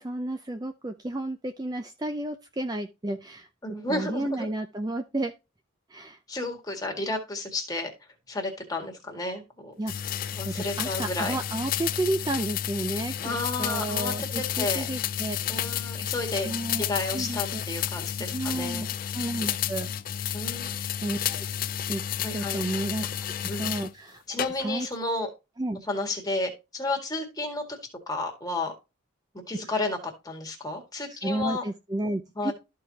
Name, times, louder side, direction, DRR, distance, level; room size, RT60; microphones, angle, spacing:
voice 1, 0.0-3.5 3.9-5.3 5.9-6.2 9.8-15.4 16.4-17.7 18.3-18.9 19.1-19.9 21.0-21.4 21.9-22.0 22.3-23.1 23.6-24.2 24.6-24.9 25.6-25.8 31.1-32.5, right 1 dB, 20° right, 0.5 m, -32 dB
voice 2, 3.6-4.5 6.3-7.9 8.3-9.7 10.3-11.4 13.2-14.1 14.6-14.9 15.5-16.5 16.8-18.8 20.3-20.7 22.2-22.6 23.5-23.6 24.3-25.3 25.9-27.8 28.1-28.7 29.5-30.0 30.2-31.6 32.4-32.5, left 2 dB, 20° left, 1.9 m, -32 dB
sound 1, 9.9-23.9 24.4-24.9, left 10 dB, 45° left, 0.3 m, -31 dB
13.5 x 4.7 x 2.8 m
head